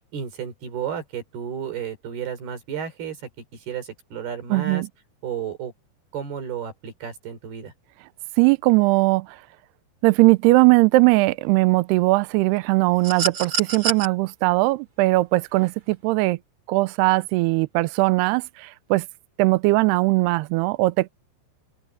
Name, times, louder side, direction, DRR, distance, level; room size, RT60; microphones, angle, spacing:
voice 1, 0.1-3.2 3.5-4.8 5.2-5.7 6.1-7.7, right 8 dB, 60° right, 6.0 m, -32 dB
voice 2, 4.5-4.9 8.4-9.4 10.0-16.4 16.7-19.1 19.4-21.1, right 22 dB, 85° right, 2.4 m, -19 dB
sound 1, 13.0-14.1 15.6-15.7, right 5 dB, 35° right, 2.7 m, -26 dB
open air
omnidirectional pair, 5.3 m